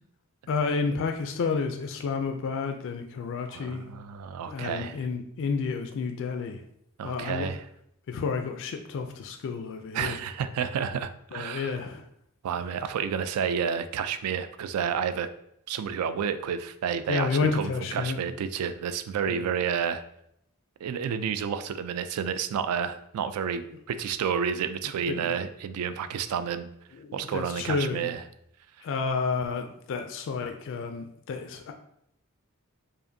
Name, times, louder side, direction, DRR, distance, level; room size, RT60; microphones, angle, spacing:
voice 1, 0.5-3.8 4.5-6.6 7.0-7.5 8.1-10.2 11.3-12.1 17.1-18.2 19.3-19.5 25.1-25.4 26.9-28.1 28.8-31.7, left 4 dB, 55° left, 5 dB, 0.3 m, -30 dB
voice 2, 3.5-5.1 7.0-7.7 9.9-11.7 12.4-15.3 15.7-20.0 20.8-26.7 27.1-28.2, right 7 dB, 75° right, 13 dB, 0.3 m, -30 dB
4.9 x 2.5 x 2.6 m, 0.75 s
head